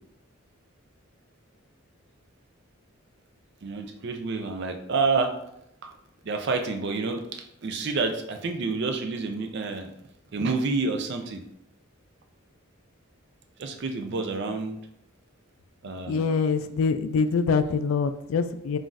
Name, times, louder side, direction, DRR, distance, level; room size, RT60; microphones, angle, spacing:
voice 1, 3.6-5.4 5.8-5.9 6.2-9.9 10.3-11.4 13.6-14.8 15.8-16.3, right 4 dB, 55° right, 5 dB, 0.4 m, -29 dB
voice 2, 16.1-18.8, left 5 dB, 75° left, 10 dB, 0.3 m, -24 dB
5.8 x 2.5 x 2.5 m, 0.79 s
head